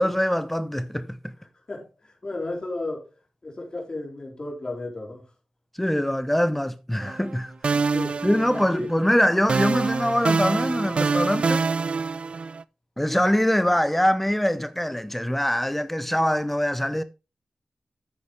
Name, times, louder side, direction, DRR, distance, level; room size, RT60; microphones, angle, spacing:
voice 1, 0.0-1.3 5.8-7.7 8.2-11.7 13.0-17.0, equal, 5° left, 0.7 m, -23 dB
voice 2, 1.7-3.1 3.4-5.3 7.7-8.3 8.5-8.9, left 2 dB, 40° left, 4.0 m, -34 dB
sound 1, 7.0-7.4 7.6-9.1 9.5-12.6, right 4 dB, 60° right, 0.4 m, -25 dB
9.7 x 8.3 x 3.3 m
cardioid pair, 70°, 2 cm